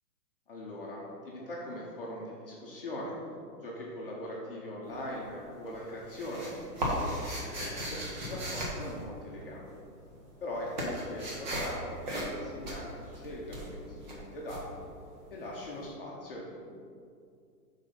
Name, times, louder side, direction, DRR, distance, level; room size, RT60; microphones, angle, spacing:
voice 1, 0.5-3.1 3.6-7.1 7.6-8.0 8.3-9.7 10.4-14.9 15.3-16.5, left 1 dB, 35° left, -4 dB, 0.9 m, -41 dB
sound 1, 4.8-5.4 5.7-9.7 10.0-15.6, equal, 30° right, 1.1 m, -36 dB
7.1 x 4.1 x 5.6 m, 2.4 s
hypercardioid pair, 170°, 49 cm